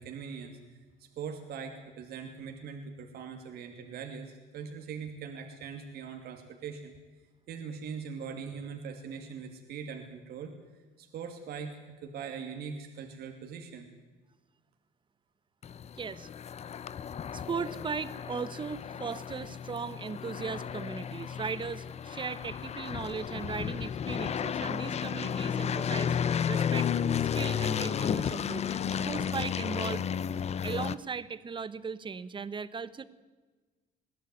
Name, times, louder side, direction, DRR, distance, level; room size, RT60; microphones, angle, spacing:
voice 1, 0.0-6.9 7.5-10.5 11.0-13.9, right 6 dB, 70° right, 4 dB, 2.6 m, -41 dB
sound 1, 15.6-30.9, left 8 dB, 40° left, 0.8 m, -33 dB
voice 2, 16.0-16.3 17.3-26.2 26.5-26.9 27.3-30.0 30.6-33.0, right 5 dB, 30° right, 15 dB, 1.1 m, -37 dB
21.0 x 16.0 x 9.5 m, 1.3 s
cardioid pair, 110°, 17 cm